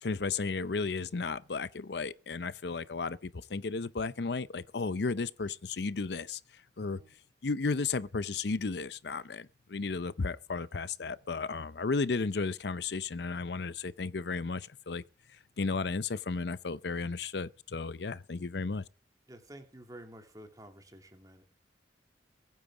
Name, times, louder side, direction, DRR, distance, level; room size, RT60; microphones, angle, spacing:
voice 1, 0.0-6.4 6.8-7.0 7.4-15.0 15.6-18.8, left 4 dB, 70° left, 0.6 m, -34 dB
voice 2, 6.8-7.1 19.3-21.4, right 1 dB, 20° right, 2.9 m, -51 dB
23.0 x 9.2 x 4.9 m
head